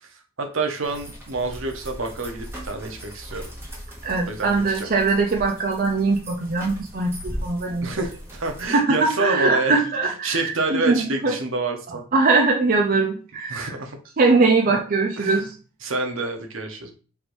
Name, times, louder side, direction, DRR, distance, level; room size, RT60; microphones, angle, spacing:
voice 1, 0.4-3.5 4.2-4.9 7.8-9.7 10.0-12.0 13.5-14.0 14.6-14.8 15.2-15.4 15.8-16.9, right 3 dB, 70° right, 4 dB, 0.8 m, -28 dB
sound 1, 0.8-8.7, equal, 10° right, 1.1 m, -38 dB
voice 2, 4.0-7.9 8.7-11.4 12.1-13.8 14.2-15.5, right 3 dB, 45° right, 2 dB, 0.5 m, -21 dB
3.4 x 2.6 x 4.5 m, 0.37 s
head